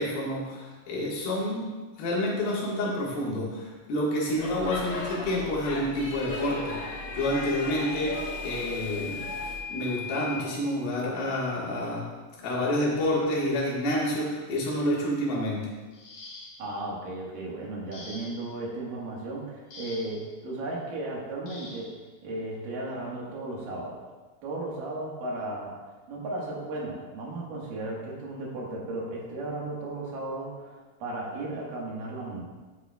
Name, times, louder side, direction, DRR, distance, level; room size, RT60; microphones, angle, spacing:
voice 1, 0.0-6.8 7.2-9.2 9.7-12.1 12.4-15.7, left 1 dB, 85° left, -5 dB, 3.5 m, -28 dB
Speech / Shout / Subway metro underground, 4.4-9.6, left 1 dB, 70° left, 1.0 m, -37 dB
Microwave oven / Alarm, 6.4-10.5, left 6 dB, 55° right, 3.4 m, -39 dB
sound 1, 15.9-16.8 17.9-18.6 19.7-20.3 21.5-21.9 23.1-23.3 23.8-24.0, left 2 dB, 55° left, 1.7 m, -45 dB
voice 2, 16.6-21.9 22.2-24.0 24.4-25.8 26.1-32.5, right 2 dB, 75° right, -3 dB, 3.2 m, -35 dB
10.0 x 7.8 x 2.3 m, 1.3 s
omnidirectional pair, 4.0 m